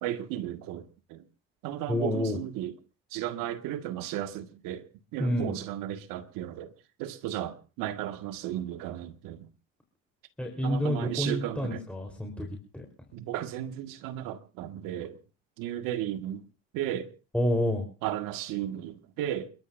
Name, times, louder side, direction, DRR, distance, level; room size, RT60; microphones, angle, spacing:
voice 1, 0.0-1.2 1.6-2.7 3.1-4.9 5.1-6.7 7.0-9.5 10.6-11.8 13.1-15.2 15.6-16.4 16.7-17.1 18.0-19.5, right 12 dB, 80° right, 1.7 m, -34 dB
voice 2, 1.9-2.4 5.2-5.6 10.4-12.5 12.7-12.8 17.3-17.9, left 1 dB, 5° left, 3.6 m, -28 dB
29.0 x 13.0 x 2.5 m
supercardioid pair, 75°, 33 cm